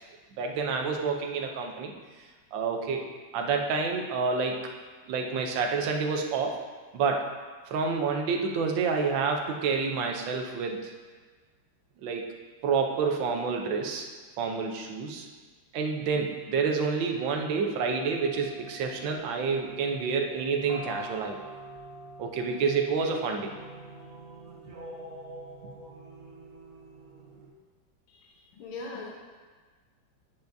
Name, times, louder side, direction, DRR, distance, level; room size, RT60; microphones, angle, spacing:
voice 1, 0.4-1.9 2.5-3.1 3.3-4.6 5.1-6.6 6.9-7.3 7.7-10.9 12.0-12.3 12.6-14.1 14.4-15.3 15.7-21.5 22.2-23.5, right 5 dB, 70° right, 3 dB, 1.4 m, -28 dB
sound 1, 17.9-27.5, right 1 dB, 50° right, 1.2 m, -45 dB
voice 2, 28.1-29.1, left 3 dB, 85° left, -2 dB, 1.8 m, -41 dB
9.2 x 7.0 x 2.6 m, 1.4 s
omnidirectional pair, 2.2 m